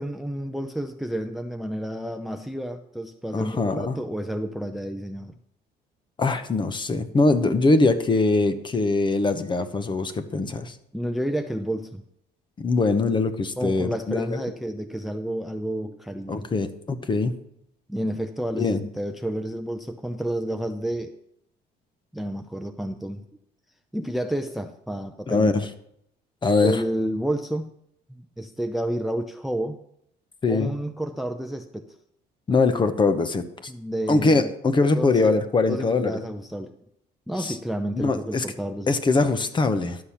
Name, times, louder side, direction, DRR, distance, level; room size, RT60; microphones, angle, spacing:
voice 1, 0.0-5.3 10.9-12.0 13.6-16.5 17.9-21.1 22.1-23.2 23.9-25.5 26.6-27.7 28.1-29.8 30.5-31.9 33.7-34.5 34.9-35.3 35.7-36.7 37.3-39.0, right 1 dB, ahead, 7 dB, 0.6 m, -30 dB
voice 2, 3.3-4.0 6.2-10.7 12.6-14.4 16.3-17.3 18.6-18.8 25.3-25.6 26.4-26.8 30.4-30.7 32.5-33.7 34.1-36.2 37.4-37.5 37.9-38.4 38.9-40.0, left 3 dB, 30° left, 10 dB, 0.9 m, -22 dB
11.5 x 6.8 x 5.8 m, 0.73 s
cardioid pair, 110°, 17 cm